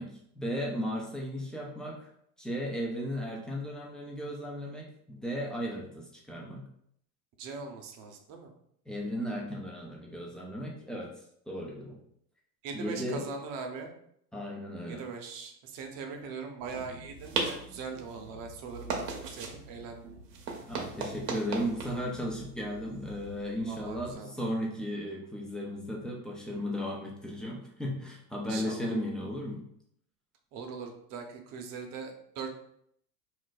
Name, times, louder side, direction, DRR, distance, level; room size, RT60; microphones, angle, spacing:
voice 1, 0.0-2.1 2.4-6.7 8.9-11.1 11.5-12.0 12.7-13.2 14.3-15.0 20.7-29.6, equal, ahead, -2 dB, 0.3 m, -35 dB
voice 2, 7.4-8.5 12.6-13.9 14.9-20.1 23.7-24.3 28.5-28.9 30.5-32.5, right 5 dB, 45° right, 3 dB, 0.7 m, -41 dB
sound 1, 16.6-24.1, right 4 dB, 80° right, 0.8 m, -39 dB
2.6 x 2.1 x 3.9 m, 0.70 s
hypercardioid pair, 90°, 48 cm